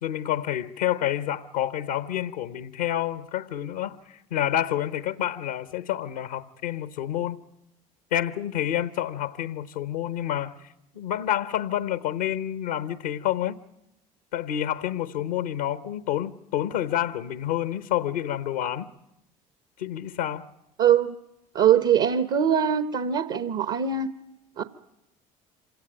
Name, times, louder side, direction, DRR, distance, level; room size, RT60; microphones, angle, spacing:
voice 1, 0.0-7.4 8.1-10.5 10.9-13.6 14.3-18.9 19.8-20.5, left 11 dB, 85° left, 0.9 m, -28 dB
voice 2, 20.8-21.1 21.5-24.1 24.6-24.7, right 8 dB, 60° right, 1.1 m, -22 dB
26.5 x 17.5 x 9.1 m
hypercardioid pair, 65°, 19 cm